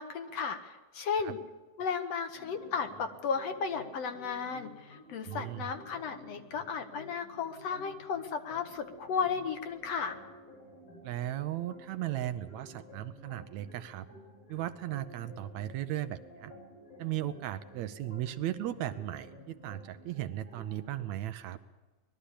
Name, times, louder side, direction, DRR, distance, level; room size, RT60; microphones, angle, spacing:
voice 1, 0.0-1.4 1.8-10.2, left 6 dB, 65° left, 7 dB, 2.0 m, -34 dB
sound 1, 2.3-21.0, equal, 80° left, 9.1 m, -52 dB
voice 2, 5.3-5.7 11.0-14.1 14.5-16.5 17.0-21.6, right 13 dB, 75° right, 11 dB, 1.9 m, -36 dB
20.5 x 13.0 x 10.0 m, 1.2 s
omnidirectional pair, 3.5 m